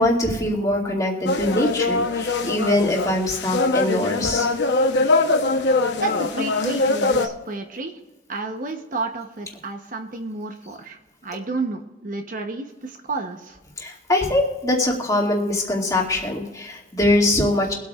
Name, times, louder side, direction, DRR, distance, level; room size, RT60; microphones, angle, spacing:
voice 1, 0.0-4.5 13.8-17.7, left 1 dB, 20° left, -2 dB, 2.2 m, -22 dB
sound 1, 1.3-7.3, left 3 dB, 65° left, 0.9 m, -22 dB
voice 2, 6.0-8.0 8.3-13.6, right 3 dB, 45° right, 5 dB, 0.9 m, -30 dB
23.5 x 8.6 x 2.4 m, 1.2 s
head